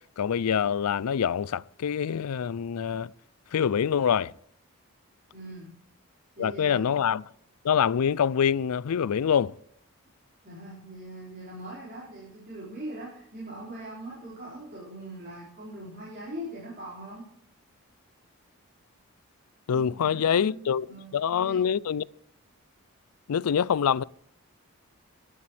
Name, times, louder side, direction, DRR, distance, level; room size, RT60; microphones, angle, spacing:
voice 1, 0.2-3.1 3.5-4.3 6.4-7.2 7.6-9.5 19.7-20.9 21.1-22.0 23.3-24.0, left 7 dB, 85° left, 0.4 m, -25 dB
voice 2, 5.3-5.7 6.4-6.9 10.4-17.3 19.7-21.6, right 1 dB, 40° right, 5.2 m, -41 dB
19.0 x 12.5 x 3.4 m
head